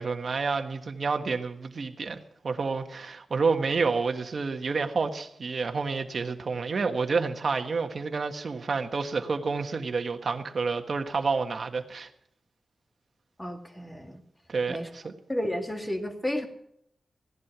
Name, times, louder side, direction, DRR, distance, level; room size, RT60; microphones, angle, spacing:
voice 1, 0.0-12.1 14.5-15.1, right 4 dB, 60° right, 1.5 m, -29 dB
voice 2, 13.4-14.2 14.7-14.9 15.3-16.5, left 1 dB, 15° left, 2.2 m, -32 dB
17.0 x 11.0 x 6.1 m
cardioid pair, 75°, 0 cm